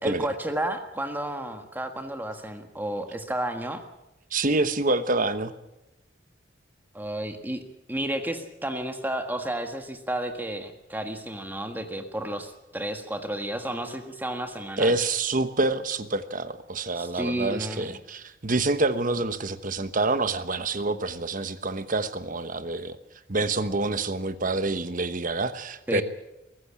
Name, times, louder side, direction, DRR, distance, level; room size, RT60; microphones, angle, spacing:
voice 1, 0.0-3.8 6.9-7.6 7.9-14.9 17.0-17.9 25.9-26.0, right 1 dB, 10° right, 6 dB, 1.5 m, -32 dB
voice 2, 4.3-5.5 14.8-23.0 23.3-26.0, right 3 dB, 45° right, 11 dB, 1.1 m, -27 dB
23.5 x 14.0 x 8.8 m, 0.97 s
head